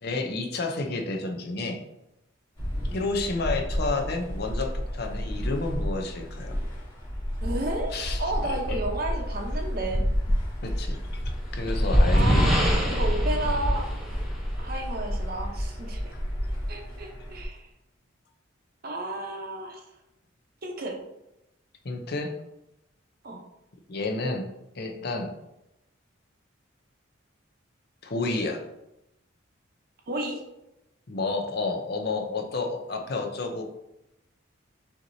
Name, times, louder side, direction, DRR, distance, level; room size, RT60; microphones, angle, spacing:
voice 1, 0.0-1.8 2.9-6.6 7.9-8.2 8.7-8.8 10.6-11.2 11.5-12.5 21.8-22.3 23.9-24.5 24.8-25.3 28.0-28.6 31.1-33.6, left 3 dB, 55° left, 4 dB, 0.6 m, -30 dB
sound 1, 2.6-17.5, equal, 20° left, 1.2 m, -30 dB
voice 2, 7.4-7.9 8.2-10.0 12.1-13.9 14.6-16.1 16.7-17.7 18.8-19.9 20.6-21.0 23.2-23.4 30.1-30.4, right 1 dB, 50° right, 1 dB, 0.7 m, -32 dB
sound 2, 11.1-14.8, equal, ahead, 0.7 m, -24 dB
5.8 x 2.8 x 2.6 m, 0.89 s
head